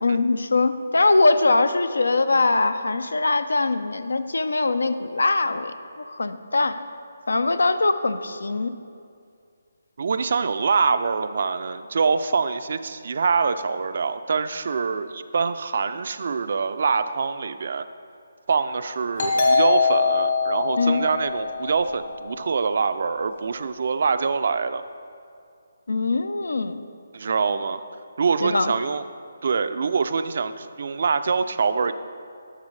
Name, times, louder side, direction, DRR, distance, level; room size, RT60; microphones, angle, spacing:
voice 1, 0.0-6.8 7.3-8.8 20.8-21.1 25.9-26.9 28.4-28.7, left 3 dB, 85° left, 11 dB, 0.5 m, -22 dB
voice 2, 10.0-17.9 18.5-24.8 27.1-27.8 28.2-29.1 29.4-31.9, right 5 dB, 55° right, 11 dB, 0.4 m, -24 dB
Doorbell, 19.2-22.5, left 4 dB, 65° left, 2.0 m, -23 dB
11.0 x 6.7 x 3.2 m, 2.4 s
hypercardioid pair, 160°, 0 cm